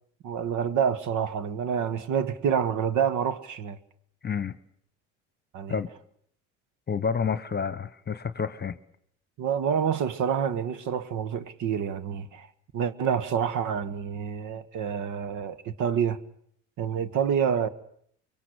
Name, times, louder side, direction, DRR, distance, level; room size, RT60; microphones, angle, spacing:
voice 1, 0.2-3.8 5.5-5.8 9.4-12.5 12.7-16.2 16.8-17.7, right 8 dB, 55° right, 1.6 m, -27 dB
voice 2, 4.2-4.5 5.7-5.9 6.9-8.8, left 6 dB, 25° left, 1.3 m, -29 dB
25.5 x 23.0 x 8.2 m
hypercardioid pair, 75°, 37 cm